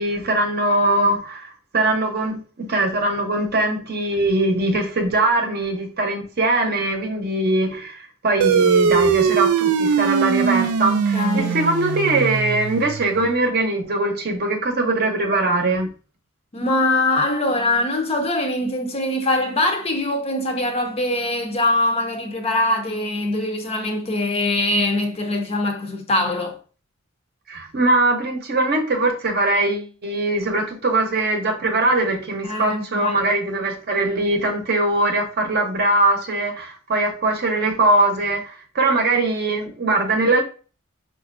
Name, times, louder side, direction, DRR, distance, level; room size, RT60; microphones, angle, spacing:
voice 1, 0.0-15.9 27.5-40.4, right 2 dB, 50° right, 0.7 m, -21 dB
sound 1, 8.4-13.3, right 6 dB, 90° right, 0.3 m, -20 dB
voice 2, 10.9-11.6 16.5-26.6 32.4-33.2, left 2 dB, 30° left, 0.5 m, -22 dB
4.1 x 2.5 x 2.5 m
head